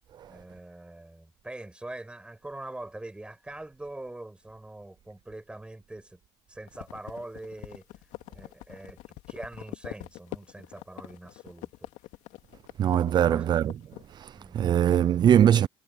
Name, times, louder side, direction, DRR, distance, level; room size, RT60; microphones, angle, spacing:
voice 1, 0.3-6.2 6.5-7.9 8.3-9.0 9.3-11.9 13.2-13.4 14.3-14.6, right 2 dB, 10° right, 6.0 m, -43 dB
sound 1, 6.7-14.1, left 17 dB, 70° left, 2.4 m, -44 dB
voice 2, 12.8-13.7 14.1-15.7, right 10 dB, 35° right, 0.5 m, -22 dB
supercardioid pair, 115°, 13 cm